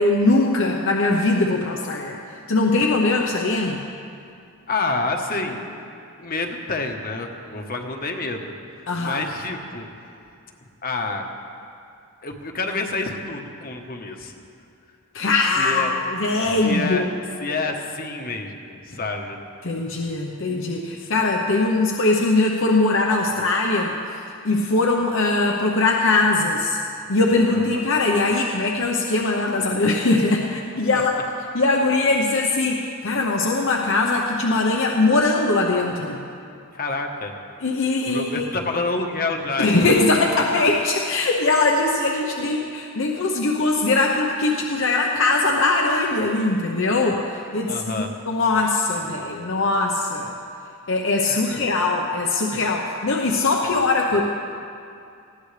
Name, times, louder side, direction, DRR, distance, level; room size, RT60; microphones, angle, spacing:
voice 1, 0.0-2.2 2.5-3.8 8.9-9.2 15.1-17.0 19.6-24.0 24.4-26.8 27.1-31.2 31.5-36.2 37.6-38.5 39.6-50.3 50.9-54.2, left 3 dB, 60° left, 0 dB, 0.9 m, -21 dB
voice 2, 4.7-5.8 6.2-9.9 10.8-11.3 12.2-14.3 15.6-16.0 16.4-17.1 17.4-19.4 21.0-21.1 27.5-27.9 30.9-31.0 36.7-37.3 38.1-40.1 47.7-48.1 51.3-51.6 53.7-53.8, left 3 dB, 40° left, 3 dB, 1.2 m, -28 dB
19.5 x 15.5 x 3.4 m, 2.5 s
head